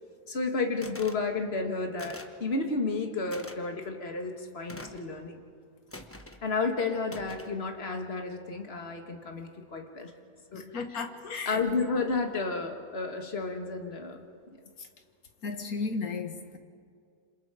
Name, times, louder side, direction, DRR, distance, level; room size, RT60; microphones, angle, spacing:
voice 1, 0.3-5.4 6.4-10.1 10.5-10.6 10.9-11.0 11.5-14.2, left 3 dB, 40° left, 2.0 m, -32 dB
sound 1, 0.8-1.2 2.0-2.4 3.3-3.6 4.7-5.1 5.9-6.4 7.1-7.6, left 1 dB, 10° left, 0.9 m, -45 dB
voice 2, 10.5-11.6 15.4-16.6, left 4 dB, 65° left, 2.0 m, -34 dB
28.0 x 26.5 x 5.0 m
omnidirectional pair, 1.7 m